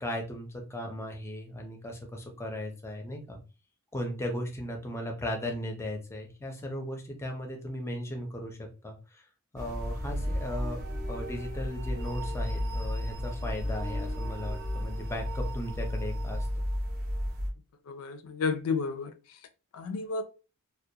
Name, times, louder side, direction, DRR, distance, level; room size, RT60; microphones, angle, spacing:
voice 1, 0.0-3.4 3.9-9.2 9.5-10.8 11.1-16.6, left 1 dB, 10° left, 0.5 m, -37 dB
sound 1, 9.6-17.5, equal, 45° right, 0.6 m, -33 dB
voice 2, 17.9-19.1 19.7-20.2, left 4 dB, 70° left, 0.4 m, -31 dB
2.3 x 2.1 x 2.7 m
head